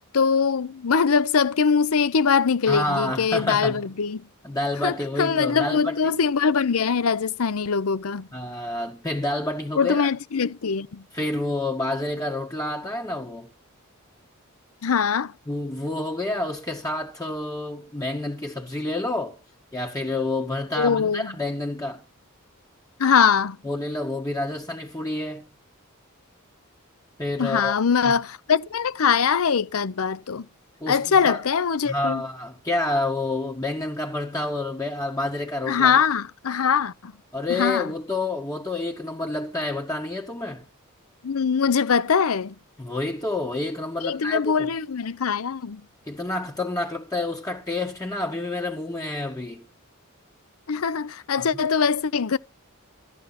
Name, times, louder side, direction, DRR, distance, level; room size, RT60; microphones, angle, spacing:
voice 1, 0.1-4.2 4.8-8.3 9.8-11.0 14.8-15.3 20.8-21.3 23.0-23.6 27.4-30.5 30.9-32.2 35.7-37.1 37.5-37.9 41.2-42.5 44.0-45.8 50.7-52.4, left 6 dB, 75° left, 0.6 m, -22 dB
voice 2, 2.7-3.8 4.4-6.1 8.3-10.0 11.1-13.5 15.5-19.4 19.7-22.0 23.6-25.5 27.2-27.7 28.0-28.2 30.8-31.4 31.9-36.0 37.3-40.7 42.8-44.7 46.1-49.6 51.4-51.6, left 2 dB, 15° left, 1.8 m, -29 dB
13.0 x 10.0 x 5.8 m
head